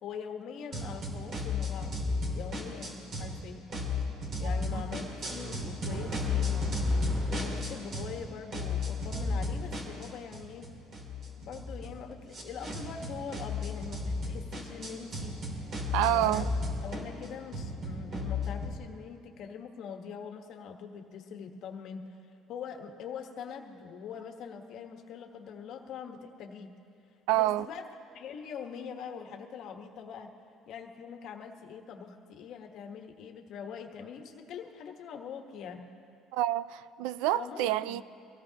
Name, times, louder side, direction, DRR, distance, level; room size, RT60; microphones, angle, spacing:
voice 1, 0.0-2.0 2.3-3.7 4.4-6.5 7.3-10.7 11.4-15.4 16.0-16.5 16.8-22.1 22.5-26.7 27.3-27.9 28.1-30.3 30.7-35.8 37.3-38.0, left 6 dB, 60° left, 1.3 m, -43 dB
sound 1, 0.7-3.4 3.7-8.2 8.5-18.7, left 3 dB, 45° right, 2.8 m, -34 dB
voice 2, 15.9-16.5 27.3-27.7 36.3-38.0, right 14 dB, 90° right, 0.3 m, -28 dB
23.5 x 17.0 x 2.9 m
cardioid pair, 120°, 0 cm